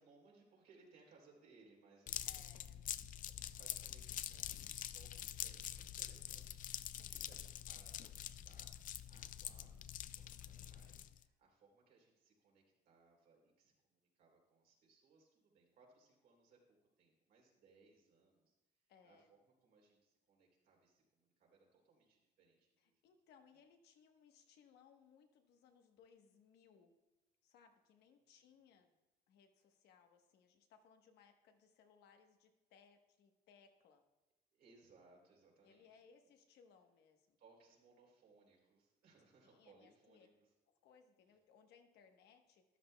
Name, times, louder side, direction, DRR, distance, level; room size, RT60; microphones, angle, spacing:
voice 1, 0.0-2.6 2.9-18.6 19.0-23.0 28.2-28.4 34.5-36.0 37.4-40.5, right 4 dB, 70° right, -2 dB, 3.3 m, -68 dB
sound 1, 2.1-11.2, left 11 dB, 55° left, 0.4 m, -46 dB
voice 2, 2.2-2.8 6.9-7.4 18.9-19.3 22.8-26.9 27.4-28.9 29.3-34.0 35.6-37.4 39.4-40.3 40.7-42.6, left 6 dB, 80° left, 5 dB, 1.1 m, -67 dB
13.0 x 11.0 x 2.2 m, 1.0 s
cardioid pair, 110°, 17 cm